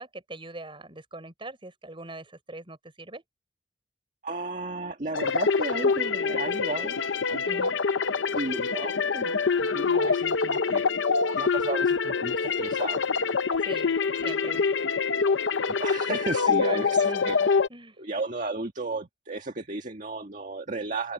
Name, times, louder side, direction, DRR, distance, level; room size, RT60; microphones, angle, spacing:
voice 1, 0.0-3.2 7.4-7.8 13.6-14.0 14.2-14.6 16.5-18.0, right 2 dB, 30° right, 6.0 m, -42 dB
voice 2, 4.2-7.0 7.3-7.7 8.3-10.9 11.4-13.0 15.6-17.6 18.0-21.1, right 2 dB, 45° right, 1.7 m, -34 dB
sound 1, 5.1-17.7, left 5 dB, 85° left, 0.8 m, -25 dB
open air
head